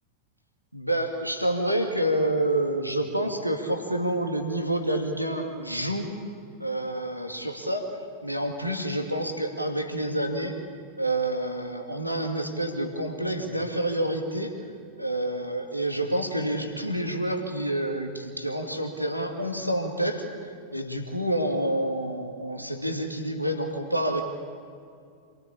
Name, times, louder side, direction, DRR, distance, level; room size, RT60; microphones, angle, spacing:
voice 1, 0.7-6.1 6.6-7.9 8.2-10.6 11.0-14.5 15.0-20.3 20.7-24.2, right 1 dB, 90° right, 3 dB, 2.4 m, -28 dB
27.5 x 18.5 x 8.8 m, 2.3 s
figure-of-eight pair, 90°, 0 cm